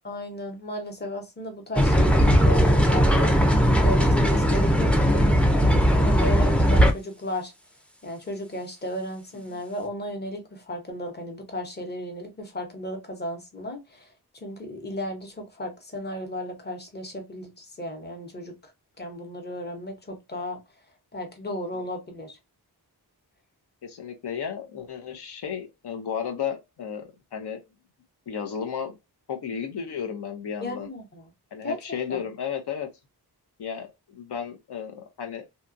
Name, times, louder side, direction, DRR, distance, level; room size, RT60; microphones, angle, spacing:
voice 1, 0.0-3.3 3.8-5.2 6.0-7.5 8.0-14.1 14.3-18.7 19.0-20.6 21.1-22.4 30.6-31.3 31.6-31.8 32.1-32.2, left 1 dB, 25° left, 0.8 m, -34 dB
sound 1, 1.8-6.9, equal, 5° left, 0.3 m, -19 dB
voice 2, 23.8-27.6 28.3-28.9 29.3-30.9 31.5-32.9 33.6-35.4, left 7 dB, 80° left, 0.6 m, -33 dB
2.8 x 2.2 x 2.5 m
wide cardioid pair, 120°, 39 cm